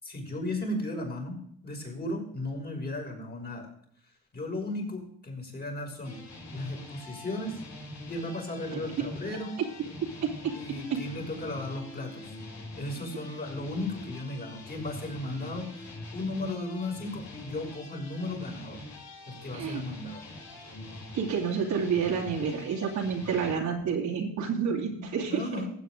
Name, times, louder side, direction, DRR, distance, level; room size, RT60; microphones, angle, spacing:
voice 1, 0.0-3.7 4.3-6.2 6.5-7.6 8.1-9.6 10.5-12.3 12.8-18.8 19.3-20.2 22.6-22.7 25.0-25.7, left 2 dB, 30° left, 0 dB, 6.0 m, -35 dB
sound 1, 6.0-23.6, left 2 dB, 70° left, 5.4 m, -45 dB
voice 2, 8.7-9.1 10.9-11.0 19.5-19.8 21.1-25.4, right 6 dB, 75° right, -1 dB, 2.8 m, -29 dB
15.5 x 8.4 x 3.8 m, 0.66 s
cardioid pair, 90°, 30 cm